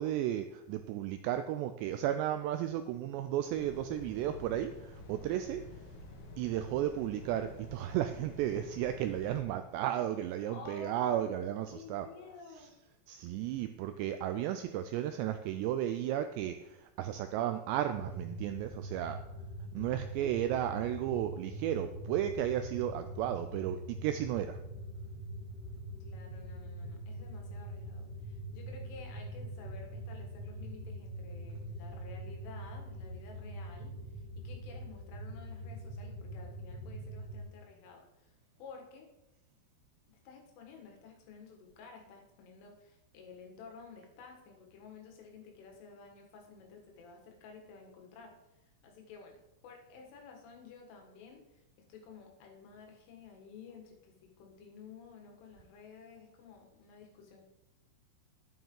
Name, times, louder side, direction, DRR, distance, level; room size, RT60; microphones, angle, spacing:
voice 1, 0.0-5.6 6.4-12.1 13.1-19.2 19.7-24.6, right 11 dB, 85° right, 9 dB, 2.5 m, -34 dB
sound 1, 3.5-9.4, left 1 dB, 60° left, 2.2 m, -49 dB
voice 2, 10.5-11.4 11.7-12.7 19.7-20.1 25.9-38.3 38.6-39.1 40.1-48.4 48.8-57.4, left 4 dB, 90° left, 2 dB, 4.3 m, -52 dB
sound 2, 17.9-37.4, right 1 dB, 30° left, 4.8 m, -43 dB
11.0 x 9.3 x 3.8 m, 0.95 s
omnidirectional pair, 5.5 m